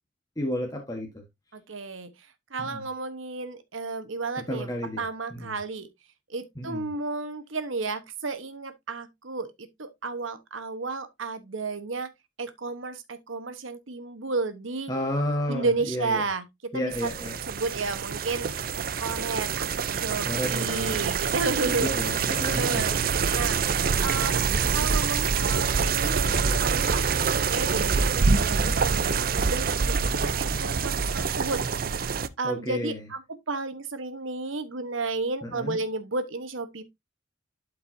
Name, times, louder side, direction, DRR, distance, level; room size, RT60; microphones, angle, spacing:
voice 1, 0.4-1.2 2.6-2.8 4.5-5.0 5.3-5.5 6.6-6.9 14.9-16.2 16.7-17.4 20.2-21.1 21.4-23.0 28.6-28.9 32.4-33.0 35.4-35.8, equal, 20° left, 1.3 m, -32 dB
voice 2, 1.5-2.1 2.5-4.7 5.0-5.9 6.3-9.5 9.8-12.1 12.4-14.9 15.5-17.1 17.5-18.5 18.7-21.9 22.5-24.4 24.7-31.6 32.4-36.8, right 3 dB, 75° right, 1.2 m, -32 dB
sound 1, 16.9-32.3, right 5 dB, 45° right, 0.5 m, -26 dB
12.0 x 4.7 x 2.7 m
head